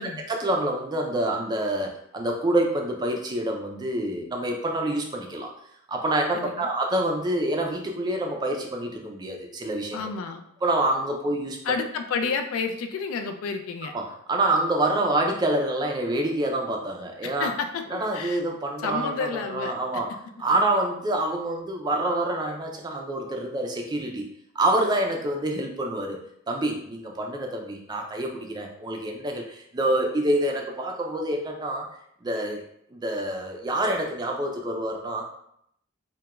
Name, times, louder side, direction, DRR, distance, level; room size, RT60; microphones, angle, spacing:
voice 1, 0.3-5.5 5.9-10.0 10.6-11.6 13.9-17.5 17.9-20.1 20.4-24.3 24.6-26.2 26.5-31.9 32.2-32.6 32.9-35.2, right 1 dB, 20° right, 2 dB, 0.3 m, -27 dB
voice 2, 6.3-6.7 9.9-10.4 11.6-13.9 17.2-18.4 18.8-19.8, left 5 dB, 85° left, 7 dB, 0.3 m, -30 dB
2.3 x 2.1 x 2.9 m, 0.72 s
head